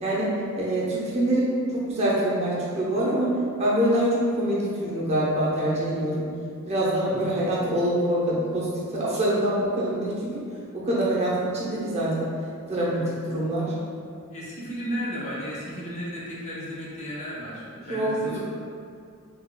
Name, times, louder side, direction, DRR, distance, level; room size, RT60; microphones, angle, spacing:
voice 1, 0.0-3.3 3.6-6.3 6.7-10.4 10.7-12.3 12.7-13.7 17.9-18.4, right 1 dB, 30° right, -7 dB, 0.7 m, -25 dB
voice 2, 7.0-7.4 12.7-13.3 14.3-18.4, equal, 30° left, -7 dB, 0.7 m, -34 dB
3.6 x 3.3 x 2.2 m, 2.3 s
head